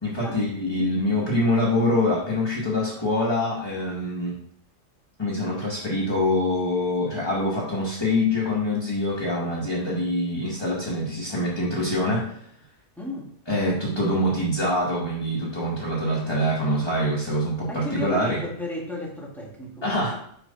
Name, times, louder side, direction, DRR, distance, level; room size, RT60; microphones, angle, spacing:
voice 1, 0.0-4.3 5.2-12.3 13.5-18.4 19.8-20.2, left 1 dB, 20° left, -5 dB, 1.3 m, -25 dB
voice 2, 13.0-13.3 17.7-20.2, left 1 dB, ahead, -2 dB, 1.1 m, -34 dB
6.5 x 3.2 x 5.3 m, 0.66 s
omnidirectional pair, 1.3 m